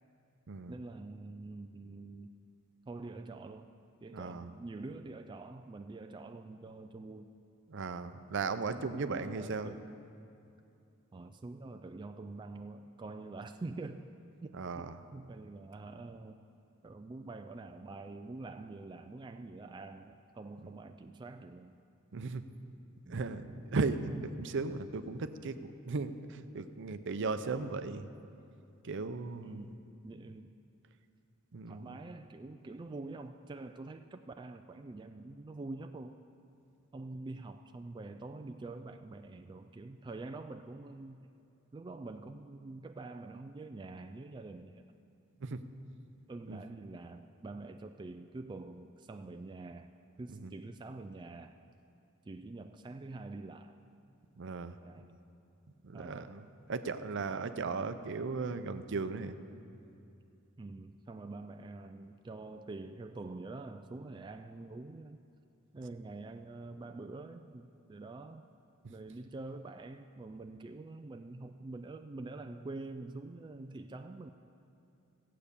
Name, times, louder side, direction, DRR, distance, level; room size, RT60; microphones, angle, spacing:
voice 1, 0.7-2.3 2.9-3.7 4.0-7.3 8.7-9.9 11.1-14.1 14.4-16.4 16.8-21.7 23.0-23.2 29.4-30.5 31.7-36.2 36.9-41.2 41.7-44.8 46.3-49.9 50.2-51.6 52.3-53.8 54.8-55.1 55.9-56.3 60.6-65.2 65.7-68.5 68.9-74.3, right 2 dB, 20° right, 6 dB, 0.3 m, -46 dB
voice 2, 4.1-4.5 7.7-9.7 14.5-15.0 22.1-22.4 23.1-25.6 25.9-28.1 28.8-29.7 31.5-32.0 45.4-45.6 46.5-46.6 50.4-50.5 54.4-54.8 55.8-56.4 56.7-59.4, right 4 dB, 60° right, 10 dB, 0.6 m, -36 dB
14.5 x 8.5 x 6.8 m, 2.7 s
head